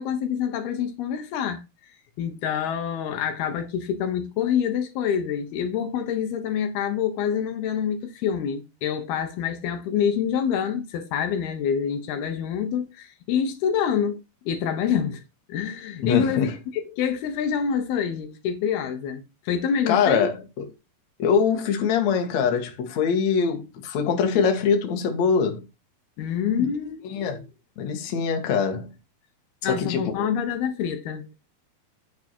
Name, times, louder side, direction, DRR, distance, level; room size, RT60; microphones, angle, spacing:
voice 1, 0.0-1.6 2.2-14.2 14.5-15.2 15.5-20.3 26.2-27.5 29.6-31.3, left 8 dB, 75° left, 2.9 m, -26 dB
voice 2, 16.0-16.5 19.9-20.6 21.2-25.7 26.6-26.7 27.1-27.4 27.8-28.9 29.7-30.1, left 6 dB, 55° left, 2.5 m, -23 dB
9.6 x 6.3 x 4.5 m
omnidirectional pair, 4.6 m